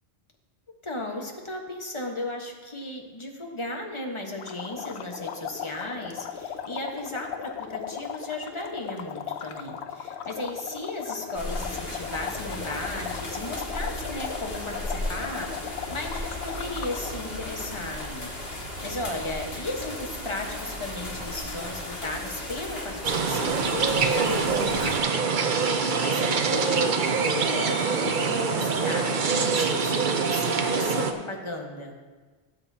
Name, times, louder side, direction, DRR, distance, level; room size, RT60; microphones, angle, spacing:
voice 1, 0.8-25.3 26.0-31.9, left 2 dB, 30° left, 1 dB, 1.3 m, -35 dB
sound 1, 4.4-17.2, left 8 dB, 85° left, 0.9 m, -37 dB
sound 2, 11.3-25.0, left 1 dB, 65° left, 2.1 m, -35 dB
sound 3, 23.0-31.1, right 5 dB, 55° right, 0.8 m, -24 dB
17.5 x 8.1 x 2.8 m, 1.4 s
omnidirectional pair, 1.1 m